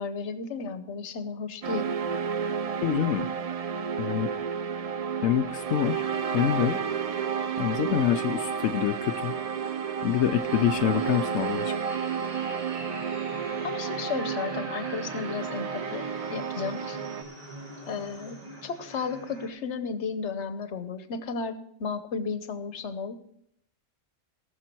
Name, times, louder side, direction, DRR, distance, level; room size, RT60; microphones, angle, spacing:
voice 1, 0.0-1.9 13.6-17.0 17.9-23.2, left 5 dB, 65° left, 11 dB, 1.2 m, -34 dB
sound 1, 1.6-17.2, right 7 dB, 65° right, 0.3 m, -31 dB
voice 2, 2.8-3.3 4.0-4.3 5.2-6.0 6.3-6.8 7.6-9.4 10.0-11.7, left 10 dB, 85° left, 6 dB, 1.0 m, -26 dB
sound 2, 5.9-19.5, right 1 dB, 30° right, 2.3 m, -46 dB
18.5 x 6.7 x 4.5 m, 0.72 s
omnidirectional pair, 1.3 m